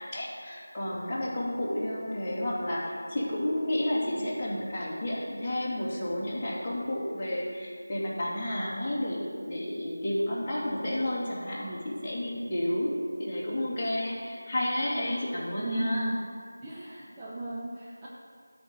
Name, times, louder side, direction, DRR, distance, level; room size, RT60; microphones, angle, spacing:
voice 1, 0.0-12.9 13.2-16.2, left 1 dB, 20° left, -8 dB, 2.4 m, -31 dB
voice 2, 15.6-16.2 16.6-18.1, right 1 dB, 10° right, -9 dB, 0.8 m, -33 dB
12.5 x 5.3 x 7.8 m, 2.2 s
figure-of-eight pair, 170°, 0 cm